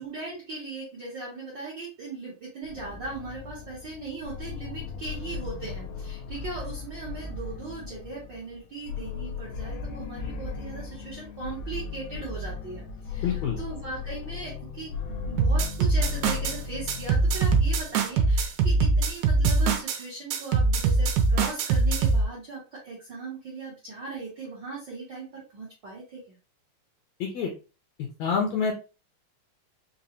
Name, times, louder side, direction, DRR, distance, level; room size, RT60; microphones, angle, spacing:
voice 1, 0.0-26.4, right 3 dB, 60° right, -4 dB, 1.2 m, -39 dB
sound 1, 2.6-18.3, left 5 dB, 85° left, 1.5 m, -37 dB
voice 2, 13.2-13.6 27.2-27.5 28.2-28.7, left 6 dB, 70° left, 1 dB, 1.7 m, -26 dB
sound 2, 15.4-16.6 16.9-20.0 20.3-22.2, right 3 dB, 80° right, 2.0 m, -22 dB
5.3 x 2.2 x 2.8 m, 0.31 s
omnidirectional pair, 3.7 m